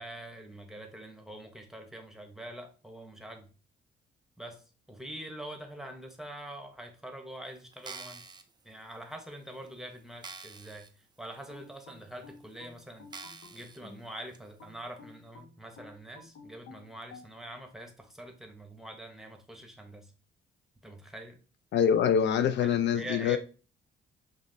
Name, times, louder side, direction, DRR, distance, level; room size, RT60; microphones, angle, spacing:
voice 1, 0.0-3.5 4.4-8.3 8.6-13.1 13.5-20.1 20.8-21.4 22.6-23.4, right 1 dB, ahead, 0.9 m, -45 dB
sound 1, 7.7-8.4 9.1-9.2 9.7-9.8 10.2-10.9 11.3-11.4 12.2-12.3 13.1-13.8 14.3-14.4, right 4 dB, 20° right, 0.4 m, -45 dB
sound 2, 11.5-14.1 14.6-17.3, left 3 dB, 80° left, 1.1 m, -51 dB
voice 2, 21.7-23.4, left 8 dB, 65° left, 0.4 m, -25 dB
5.7 x 2.5 x 2.6 m
cardioid pair, 90°, 20 cm